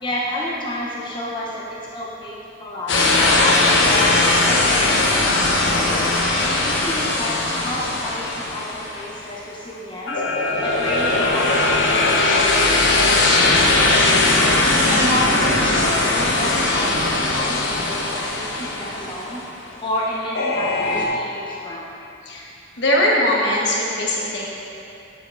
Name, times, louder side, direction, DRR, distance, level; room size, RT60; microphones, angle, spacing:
voice 1, 0.0-5.9 6.4-10.2 10.6-14.3 14.8-19.4 19.8-22.0 22.7-22.8, left 1 dB, 25° left, -6 dB, 0.7 m, -30 dB
sound 1, 2.9-9.3 10.1-19.4 20.3-21.1, left 2 dB, 90° left, 0.9 m, -19 dB
voice 2, 22.8-24.5, left 1 dB, 70° left, -3 dB, 1.2 m, -20 dB
8.5 x 7.7 x 2.5 m, 2.7 s
head